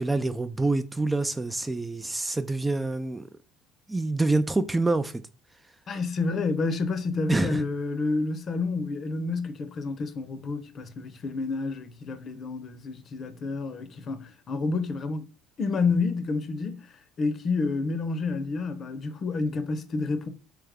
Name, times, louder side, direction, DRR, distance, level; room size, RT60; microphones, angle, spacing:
voice 1, 0.0-3.3 3.9-5.2 7.3-7.6, right 2 dB, 15° right, 0.3 m, -26 dB
voice 2, 5.9-15.3 15.6-20.3, left 3 dB, 45° left, 0.7 m, -29 dB
3.4 x 3.2 x 3.5 m
supercardioid pair, 80°, 0 cm